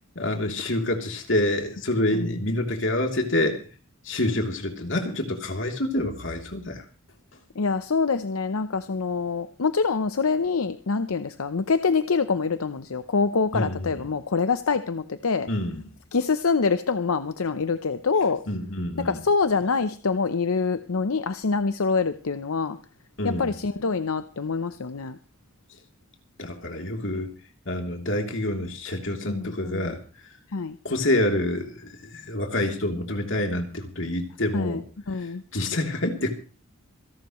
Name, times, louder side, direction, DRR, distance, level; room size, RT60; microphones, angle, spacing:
voice 1, 0.1-3.6 4.0-6.8 13.5-14.0 15.5-15.9 18.5-19.2 23.2-23.5 26.4-27.3 27.6-30.0 30.8-34.8 35.1-35.3 35.5-36.3, left 1 dB, 60° left, 3 dB, 3.1 m, -27 dB
voice 2, 7.6-15.5 16.1-18.4 19.0-22.8 23.2-25.2 29.3-30.0 30.5-30.8 34.5-34.8 35.1-35.4, left 4 dB, 80° left, 12 dB, 0.7 m, -25 dB
27.0 x 11.5 x 3.1 m, 0.37 s
head